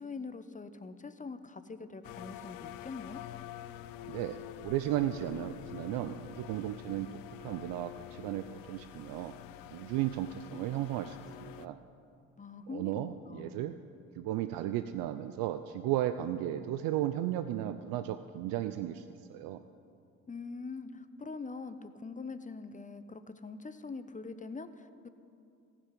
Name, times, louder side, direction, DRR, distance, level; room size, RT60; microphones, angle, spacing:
voice 1, 0.0-3.2 12.4-13.7 20.3-25.1, left 4 dB, 20° left, 11 dB, 0.8 m, -43 dB
sound 1, 2.0-11.7, left 14 dB, 75° left, 0.5 m, -47 dB
voice 2, 4.1-7.1 7.4-9.3 9.7-11.8 12.7-13.8 14.2-19.6, right 12 dB, 75° right, 10 dB, 0.5 m, -35 dB
15.0 x 6.2 x 9.5 m, 2.5 s
supercardioid pair, 60°, 35 cm